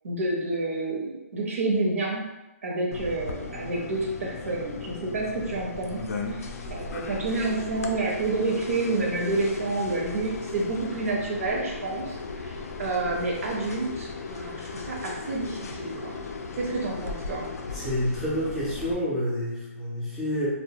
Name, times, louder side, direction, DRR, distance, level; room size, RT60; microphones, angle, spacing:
voice 1, 0.0-2.3 2.6-6.1 6.7-12.2 12.4-16.2 16.6-17.5, right 2 dB, 65° right, -1 dB, 0.7 m, -29 dB
sound 1, 2.9-18.9, left 4 dB, 90° left, 0.4 m, -37 dB
voice 2, 17.7-20.5, equal, ahead, -11 dB, 0.4 m, -28 dB
2.3 x 2.1 x 2.7 m, 0.97 s
hypercardioid pair, 175°, 8 cm